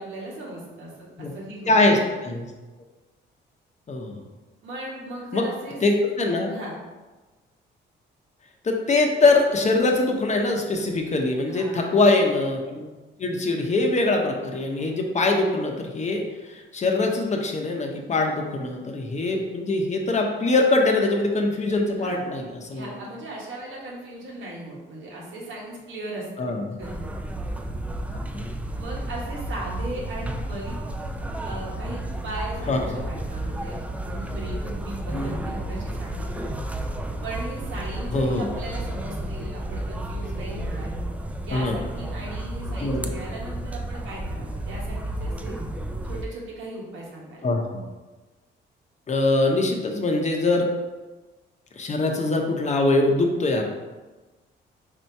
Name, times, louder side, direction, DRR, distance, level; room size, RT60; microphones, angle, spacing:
voice 1, 0.0-2.0 4.6-5.8 6.5-6.7 11.5-12.0 22.0-22.3 22.7-26.5 26.8-27.1 28.7-30.8 31.4-33.8 34.1-36.5 37.2-40.9 41.4-45.6 46.0-47.5, right 1 dB, 80° right, -3 dB, 1.4 m, -37 dB
voice 2, 1.7-2.5 3.9-4.2 5.3-5.4 5.8-6.5 8.6-12.9 13.2-23.0 26.4-26.8 28.3-28.6 32.7-33.0 35.1-35.5 38.1-38.5 41.5-41.8 42.8-43.1 47.4-47.6 49.1-50.7 51.8-53.7, left 2 dB, 35° left, 2 dB, 0.8 m, -23 dB
sound 1, 26.8-46.2, right 1 dB, 5° right, 0.3 m, -32 dB
4.3 x 2.8 x 4.5 m, 1.2 s
cardioid pair, 90°, 20 cm